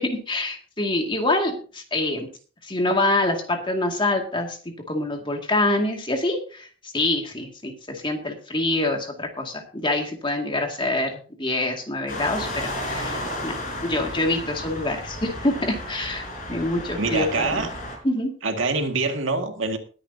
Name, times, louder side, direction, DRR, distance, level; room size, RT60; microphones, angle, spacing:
voice 1, 0.0-2.3 2.6-4.6 4.9-11.1 11.4-17.7 18.0-18.3, left 2 dB, 25° left, 3 dB, 2.2 m, -26 dB
sound 1, 12.1-17.9, left 1 dB, 45° left, 5.5 m, -33 dB
voice 2, 17.0-17.7 18.4-19.8, right 3 dB, 85° right, 5 dB, 2.0 m, -25 dB
20.5 x 9.9 x 2.8 m, 0.39 s
head